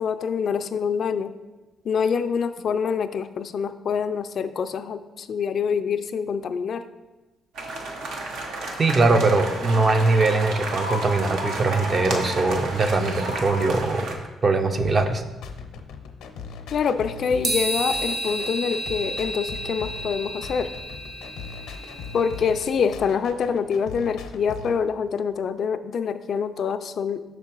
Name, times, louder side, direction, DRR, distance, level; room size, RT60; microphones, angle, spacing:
voice 1, 0.0-1.3 1.8-6.9 16.7-20.7 22.1-27.2, left 6 dB, 60° left, 10 dB, 0.3 m, -25 dB
sound 1, 7.6-14.1, right 2 dB, 80° right, 1.0 m, -31 dB
voice 2, 8.8-14.1 14.4-15.2, right 3 dB, 40° right, 7 dB, 0.6 m, -21 dB
sound 2, 14.8-24.8, left 5 dB, 90° left, 0.7 m, -40 dB
sound 3, 17.4-22.7, right 1 dB, 60° right, 1.4 m, -31 dB
6.0 x 4.6 x 4.5 m, 1.1 s
cardioid pair, 90°, 0 cm